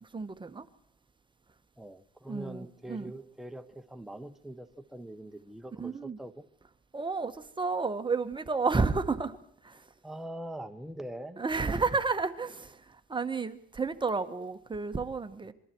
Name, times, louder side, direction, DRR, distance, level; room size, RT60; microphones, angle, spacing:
voice 1, 0.0-0.7 2.3-3.1 5.8-6.2 6.9-9.4 9.6-9.8 11.4-15.5, right 4 dB, 25° right, 9 dB, 1.5 m, -31 dB
voice 2, 1.8-6.4 10.0-11.8, right 1 dB, ahead, 6 dB, 1.4 m, -43 dB
27.0 x 22.5 x 4.7 m, 0.64 s
cardioid pair, 90°, 20 cm